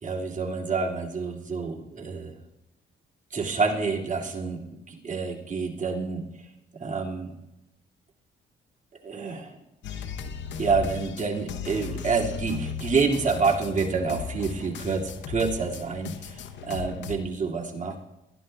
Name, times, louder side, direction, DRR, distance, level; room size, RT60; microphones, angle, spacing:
voice 1, 0.0-2.3 3.3-6.2 6.8-7.4 9.0-9.6 10.0-10.1 10.6-18.0, right 4 dB, 40° right, -1 dB, 2.1 m, -28 dB
sound 1, 9.8-17.2, left 7 dB, 65° left, 0.8 m, -37 dB
20.5 x 12.0 x 2.2 m, 0.96 s
cardioid pair, 90°, 20 cm